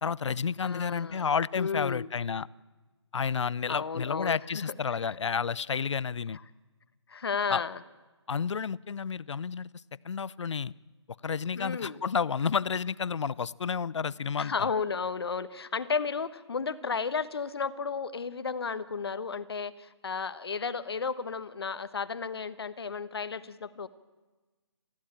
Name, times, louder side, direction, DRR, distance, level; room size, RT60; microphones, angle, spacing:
voice 1, 0.0-2.5 3.1-6.4 7.5-7.6 8.3-9.7 10.0-10.7 11.2-14.7, left 6 dB, 75° left, 22 dB, 0.5 m, -31 dB
voice 2, 0.6-1.3 1.6-2.1 3.7-4.7 6.3-6.4 7.1-7.8 11.6-12.0 14.4-23.9, left 5 dB, 60° left, 14 dB, 1.1 m, -33 dB
20.5 x 15.0 x 8.7 m, 1.2 s
hypercardioid pair, 170°, 15 cm